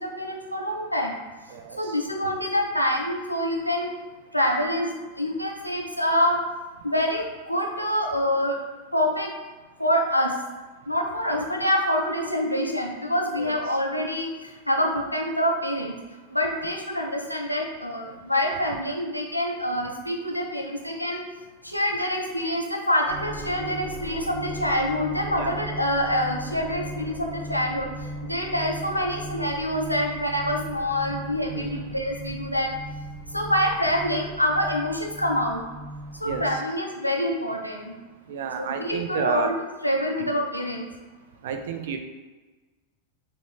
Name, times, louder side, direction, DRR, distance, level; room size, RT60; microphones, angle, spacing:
voice 1, 0.0-1.1 1.8-3.9 4.3-4.9 5.2-6.4 6.8-8.6 8.9-9.3 9.8-10.3 10.9-14.3 14.7-15.9 16.3-21.2 21.6-27.9 28.2-32.7 33.3-35.6 36.2-38.0 38.6-39.5 39.8-40.8, equal, 90° left, 1 dB, 0.5 m, -26 dB
voice 2, 1.5-2.1 11.3-11.4 13.3-13.8 25.4-25.5 31.5-32.0 36.2-36.6 38.3-39.5 40.2-40.3 41.4-42.0, right 7 dB, 55° right, 5 dB, 0.4 m, -32 dB
sound 1, 23.1-36.6, right 1 dB, 10° right, 1.4 m, -37 dB
4.0 x 2.5 x 3.1 m, 1.3 s
figure-of-eight pair, 90°, 0 cm